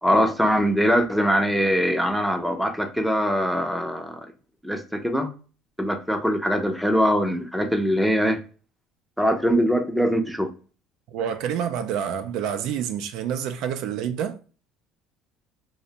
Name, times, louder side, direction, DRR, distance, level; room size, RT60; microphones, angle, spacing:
voice 1, 0.0-4.3 4.6-5.3 5.8-8.4 9.2-10.5, equal, ahead, 0.5 m, -22 dB
voice 2, 11.1-14.4, right 8 dB, 70° right, 0.3 m, -28 dB
2.5 x 2.0 x 2.8 m
cardioid pair, 120°, 0 cm